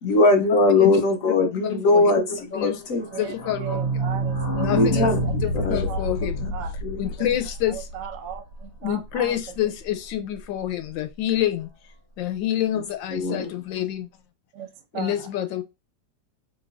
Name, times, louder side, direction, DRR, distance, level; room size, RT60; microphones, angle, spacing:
voice 1, 0.0-3.1 4.7-5.2 5.6-5.9 6.4-6.5 6.8-7.3 13.1-13.5, left 3 dB, 65° left, 0.8 m, -21 dB
voice 2, 1.6-2.1 2.5-2.8 3.2-3.6 4.5-5.0 5.4-6.5 7.0-7.9 8.8-11.7 12.2-14.1 14.9-15.6, left 12 dB, 80° left, 1.3 m, -27 dB
sound 1, 3.0-8.6 8.9-9.0 9.2-9.3 9.6-9.7, right 1 dB, 45° left, 1.2 m, -27 dB
voice 3, 3.1-6.1 6.5-6.8 7.7-9.4 9.6-9.7 14.5-14.7 14.9-15.3, right 9 dB, 65° right, 0.7 m, -37 dB
4.0 x 3.0 x 2.4 m
omnidirectional pair, 2.0 m